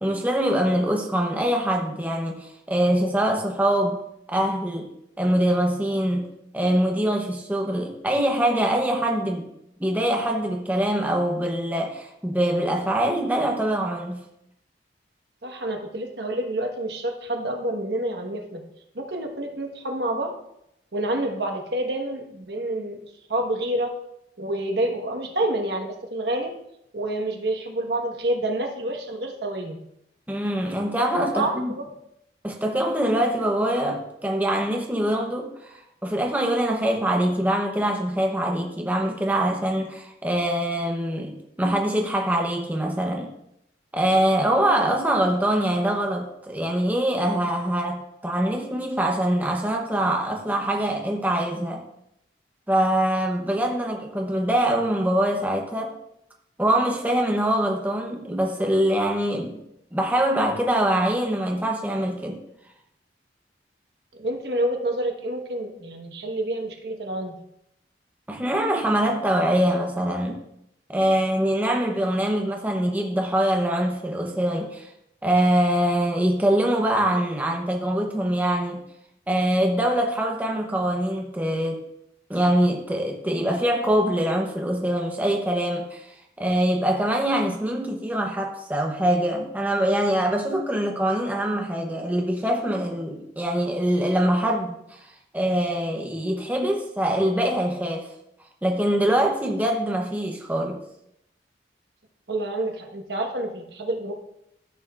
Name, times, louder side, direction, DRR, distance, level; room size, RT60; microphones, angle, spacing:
voice 1, 0.0-4.0 4.3-4.9 5.2-9.5 9.8-14.2 30.3-31.7 32.4-43.3 43.9-51.9 52.7-55.9 56.6-59.6 59.9-62.4 68.3-70.4 70.9-74.9 75.2-78.9 79.3-81.8 82.3-86.1 86.4-95.0 95.3-98.1 98.6-100.8, right 1 dB, 10° right, 1 dB, 0.7 m, -24 dB
voice 2, 15.4-18.6 18.9-20.4 20.9-23.0 23.3-23.9 24.4-26.5 26.9-29.8 31.3-31.9 64.1-67.3 102.3-104.1, right 1 dB, 70° right, 3 dB, 1.2 m, -28 dB
13.5 x 6.7 x 2.4 m, 0.80 s
head